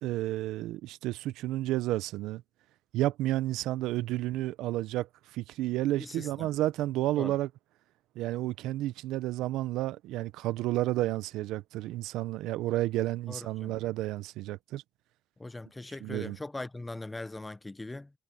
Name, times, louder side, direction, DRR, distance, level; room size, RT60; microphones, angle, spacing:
voice 1, 0.0-2.4 2.9-5.1 5.3-7.5 8.2-14.8 16.0-16.4, right 15 dB, 80° right, 0.5 m, -31 dB
voice 2, 6.0-6.5 7.2-7.4 13.3-13.7 15.4-18.1, left 2 dB, 10° left, 0.5 m, -40 dB
cardioid pair, 155°, 0 cm